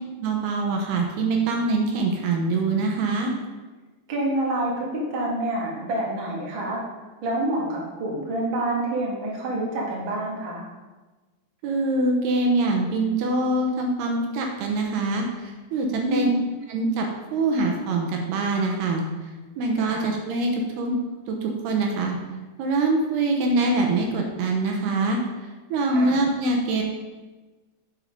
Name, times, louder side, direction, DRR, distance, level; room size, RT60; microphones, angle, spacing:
voice 1, 0.2-3.3 11.6-16.4 16.7-19.0 19.6-21.0 21.3-22.2 22.6-25.2 25.7-26.8, right 2 dB, 75° right, 2 dB, 3.0 m, -24 dB
voice 2, 4.1-6.8 7.2-10.6 15.9-16.4 19.8-20.1 25.9-26.2, right 1 dB, 40° right, -3 dB, 2.1 m, -27 dB
11.0 x 5.9 x 5.3 m, 1.2 s
omnidirectional pair, 4.8 m